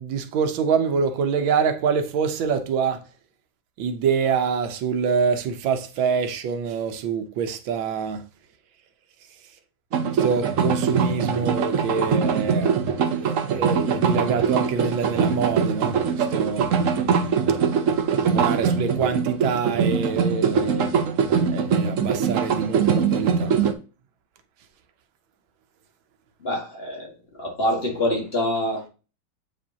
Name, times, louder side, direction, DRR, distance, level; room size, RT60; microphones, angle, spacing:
voice 1, 0.0-3.0 3.8-8.2 10.2-12.8 13.2-16.7 18.2-20.9 21.5-23.5, right 6 dB, 85° right, 1.6 m, -25 dB
sound 1, 9.9-23.7, right 6 dB, 55° right, 0.9 m, -22 dB
voice 2, 26.4-27.1 27.4-28.8, left 1 dB, 35° left, 1.7 m, -25 dB
8.1 x 5.2 x 2.8 m
omnidirectional pair, 2.1 m